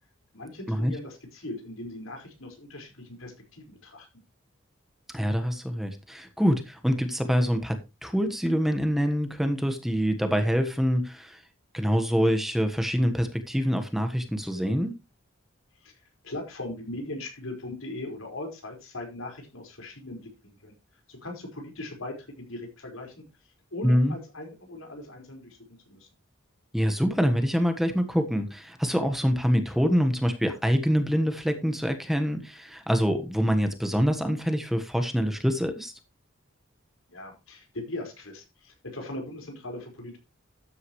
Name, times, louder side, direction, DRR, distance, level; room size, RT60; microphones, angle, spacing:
voice 1, 0.3-4.1 15.8-16.0 16.2-20.7 21.1-23.2 23.7-25.6 25.9-26.1 37.1-40.2, left 2 dB, 85° left, 3 dB, 5.0 m, -39 dB
voice 2, 5.1-11.4 11.7-14.9 23.8-24.2 26.7-35.9, equal, ahead, 6 dB, 1.3 m, -25 dB
13.0 x 9.5 x 3.2 m, 0.26 s
head